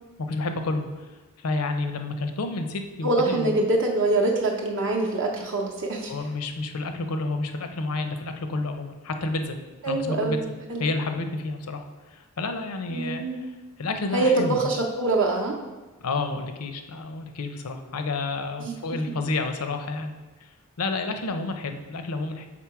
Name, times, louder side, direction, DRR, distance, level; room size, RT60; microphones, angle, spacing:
voice 1, 0.2-0.9 1.4-3.6 6.1-9.6 9.9-10.4 10.8-11.8 12.1-13.2 13.8-14.7 16.0-20.1 20.4-20.5 20.8-22.5, left 3 dB, 80° left, 7 dB, 0.6 m, -30 dB
voice 2, 3.0-6.1 9.8-10.4 10.7-10.8 12.9-13.4 14.1-15.6 18.6-18.8, right 2 dB, 60° right, -1 dB, 0.6 m, -24 dB
6.0 x 3.7 x 4.7 m, 1.2 s
head